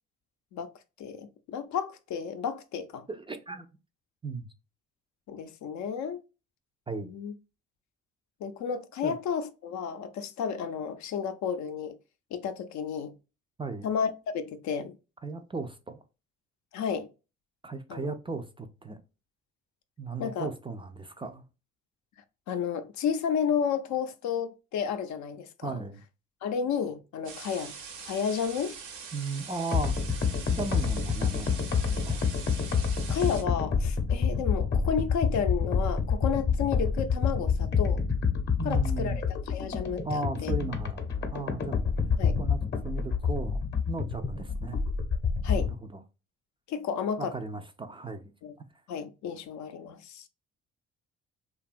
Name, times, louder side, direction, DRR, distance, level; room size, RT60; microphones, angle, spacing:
voice 1, 1.0-3.1 5.3-6.2 7.0-7.3 8.4-12.0 12.3-13.1 13.8-14.9 16.7-17.1 17.9-18.1 20.2-20.5 22.5-25.8 26.4-27.7 28.0-28.8 33.1-38.0 38.6-40.5 42.2-42.4 45.4-45.7 46.7-47.3 48.4-48.5 48.9-50.3, left 7 dB, 65° left, 0.5 m, -32 dB
voice 2, 3.1-3.7 4.2-4.5 6.9-7.1 9.0-9.1 13.6-13.9 15.2-16.0 17.6-19.0 20.0-21.4 25.6-26.0 29.1-30.2 30.5-32.2 38.6-39.2 40.0-41.8 42.4-44.8 45.4-46.0 47.2-48.3, right 3 dB, 20° right, 0.3 m, -36 dB
sound 1, 27.2-33.4, right 6 dB, 75° right, 0.8 m, -43 dB
sound 2, 29.7-45.7, left 5 dB, 35° left, 0.7 m, -28 dB
2.7 x 2.3 x 2.4 m
supercardioid pair, 65°, 31 cm